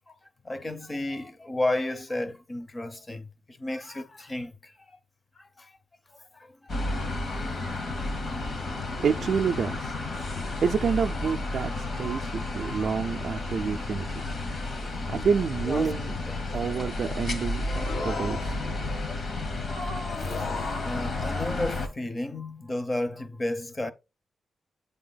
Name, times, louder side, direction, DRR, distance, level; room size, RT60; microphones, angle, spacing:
voice 1, 0.4-5.0 5.4-5.8 6.1-7.6 8.2-8.7 11.3-11.4 11.9-12.9 13.5-13.6 14.0-15.0 15.7-16.8 20.2-20.5 20.8-23.9, left 1 dB, 20° left, 0.6 m, -34 dB
sound 1, 6.7-21.9, left 2 dB, 50° left, 1.3 m, -32 dB
voice 2, 8.9-10.0 10.3-14.2 14.7-16.1 16.5-18.7, right 6 dB, 55° right, 0.3 m, -29 dB
sound 2, 17.7-19.0 20.1-21.4, left 3 dB, 90° left, 1.3 m, -36 dB
8.6 x 3.3 x 3.9 m
wide cardioid pair, 180°, 0 cm